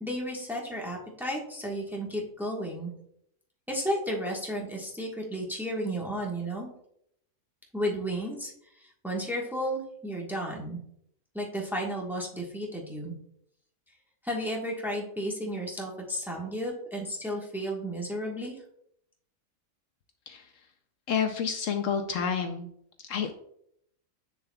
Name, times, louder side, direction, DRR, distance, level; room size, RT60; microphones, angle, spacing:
voice 1, 0.0-2.9 3.7-6.7 7.7-8.5 8.8-10.8 11.3-13.1 14.2-18.5, equal, ahead, -2 dB, 1.1 m, -33 dB
voice 2, 21.1-22.7 23.0-23.3, left 7 dB, 70° left, 6 dB, 0.9 m, -29 dB
7.8 x 6.6 x 2.3 m, 0.72 s
omnidirectional pair, 1.5 m